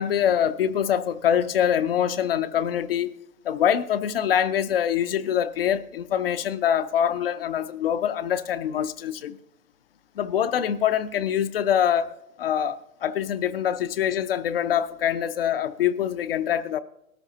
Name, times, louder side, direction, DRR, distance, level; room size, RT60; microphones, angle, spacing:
voice 1, 0.0-3.1 3.4-9.4 10.2-12.1 12.4-16.8, left 9 dB, 45° left, 0.6 m, -24 dB
19.5 x 13.0 x 2.8 m
figure-of-eight pair, 120°, 42 cm